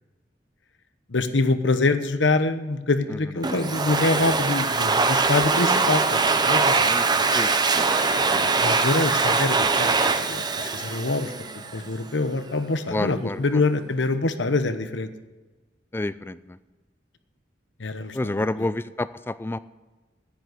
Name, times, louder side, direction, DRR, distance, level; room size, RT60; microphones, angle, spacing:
voice 1, 1.1-6.0 6.4-6.8 8.3-9.9 10.3-11.3 11.7-15.1 17.8-18.7, left 3 dB, 85° left, 10 dB, 1.0 m, -25 dB
Domestic sounds home sounds, 3.4-11.9, right 4 dB, 25° right, 0.7 m, -22 dB
voice 2, 12.9-13.4 15.9-16.6 18.1-19.6, left 2 dB, 10° left, 16 dB, 0.3 m, -28 dB
10.0 x 9.2 x 9.5 m, 1.2 s
head